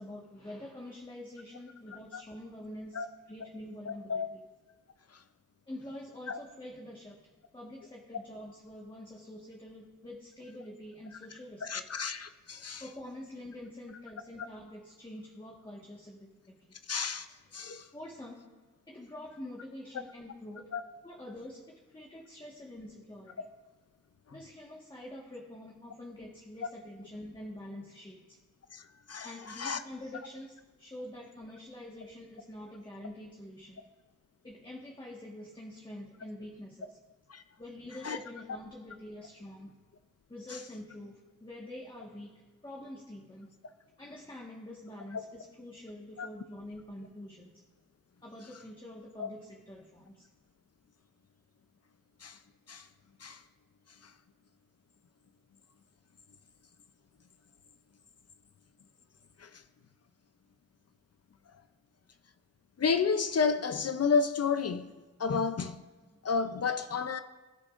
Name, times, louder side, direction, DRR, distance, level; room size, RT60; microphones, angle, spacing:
voice 1, 0.0-4.2 5.7-11.8 12.8-16.8 17.9-18.4 18.9-20.7 21.0-23.4 24.3-28.4 29.2-33.8 34.4-37.0 37.6-39.8 40.3-43.5 44.0-47.6 48.2-50.3 66.1-66.2, left 1 dB, 15° left, 1.5 m, -46 dB
voice 2, 3.9-4.3 5.1-5.2 6.3-6.4 11.6-12.8 16.9-17.3 17.5-17.9 20.7-20.8 28.7-29.8 37.3-37.4 38.0-38.2 40.5-40.6 46.2-46.3 49.2-49.3 52.2-52.4 52.7-52.9 53.2-53.4 54.0-54.1 59.4-59.6 62.8-64.9 65.2-65.8 66.2-67.2, left 5 dB, 50° left, 0.6 m, -31 dB
22.0 x 10.5 x 2.5 m
wide cardioid pair, 90°, 33 cm